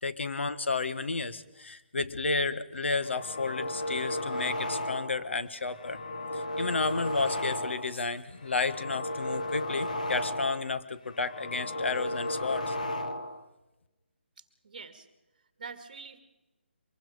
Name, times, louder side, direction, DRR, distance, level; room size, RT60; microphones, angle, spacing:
voice 1, 0.0-6.0 6.3-12.7, left 3 dB, 85° left, 12 dB, 1.5 m, -32 dB
sound 1, 2.9-5.3 5.6-8.0 8.4-10.7 11.1-13.4, left 1 dB, 40° left, 1.1 m, -34 dB
voice 2, 14.4-15.1 15.3-16.2, right 5 dB, 45° right, 9 dB, 2.1 m, -46 dB
24.5 x 21.5 x 5.0 m, 1.0 s
hypercardioid pair, 175°, 6 cm